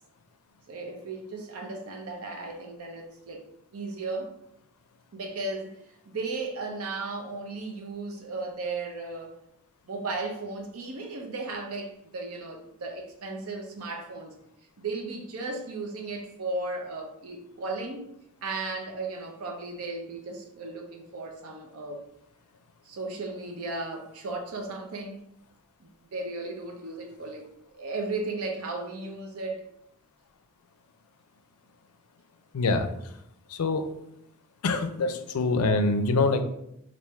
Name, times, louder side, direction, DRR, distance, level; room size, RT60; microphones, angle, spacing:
voice 1, 0.7-3.4 3.7-4.3 5.1-5.8 6.1-9.4 9.9-14.3 14.8-18.1 18.4-22.0 22.8-25.2 25.8-27.4 27.7-29.7, right 3 dB, 75° right, 3 dB, 0.6 m, -35 dB
voice 2, 32.5-32.9 33.5-33.9 34.6-36.4, left 3 dB, 80° left, 7 dB, 0.4 m, -25 dB
3.5 x 2.5 x 4.2 m, 0.78 s
head